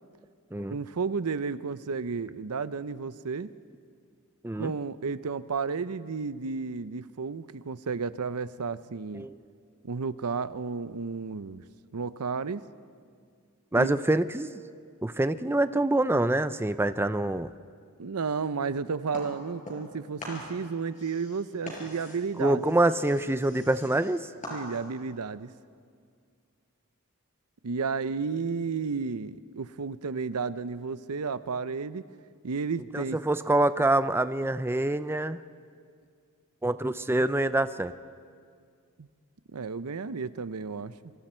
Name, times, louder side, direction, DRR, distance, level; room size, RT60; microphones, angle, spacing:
voice 1, 0.7-3.5 4.6-9.3 9.8-11.6 11.9-12.6 13.7-13.9 18.0-22.7 24.5-25.5 27.6-32.0 32.4-33.2 39.0-39.1 39.5-41.1, right 5 dB, 90° right, 15 dB, 0.7 m, -32 dB
voice 2, 13.7-14.5 15.0-17.5 22.4-24.3 32.9-35.4 36.6-37.9, right 1 dB, 10° right, 13 dB, 0.4 m, -25 dB
sound 1, 19.1-19.9 20.2-25.1, left 1 dB, 35° left, 5.7 m, -43 dB
26.5 x 24.0 x 4.5 m, 2.1 s
head